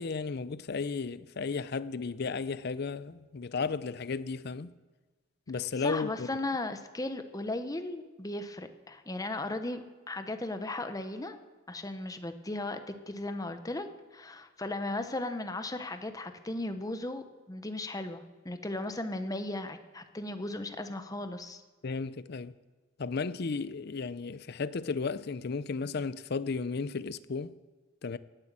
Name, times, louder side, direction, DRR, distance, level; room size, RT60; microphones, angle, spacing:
voice 1, 0.0-4.7 5.5-6.3 21.8-22.5 23.0-27.5 28.0-28.2, left 4 dB, 50° left, 0.5 m, -34 dB
voice 2, 5.8-11.4 11.7-13.9 14.1-21.6, left 2 dB, 15° left, 0.9 m, -36 dB
18.0 x 8.1 x 7.5 m
head